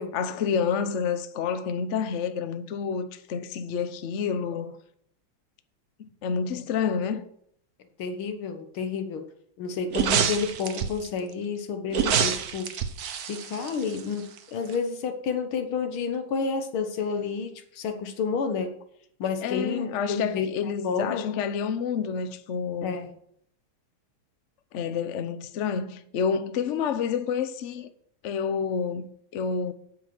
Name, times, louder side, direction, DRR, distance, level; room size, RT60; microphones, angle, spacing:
voice 1, 0.1-4.8 6.0-7.2 19.4-23.0 24.7-27.9 28.2-29.7, left 6 dB, 65° left, 0.7 m, -29 dB
voice 2, 8.0-9.3 9.6-12.7 13.3-18.7 19.2-20.5 20.8-21.3 22.8-23.1, left 5 dB, 85° left, 2.1 m, -30 dB
sound 1, 9.9-11.1 11.9-14.4 14.7-14.8, right 8 dB, 55° right, 1.2 m, -27 dB
9.1 x 7.5 x 6.0 m
omnidirectional pair, 2.3 m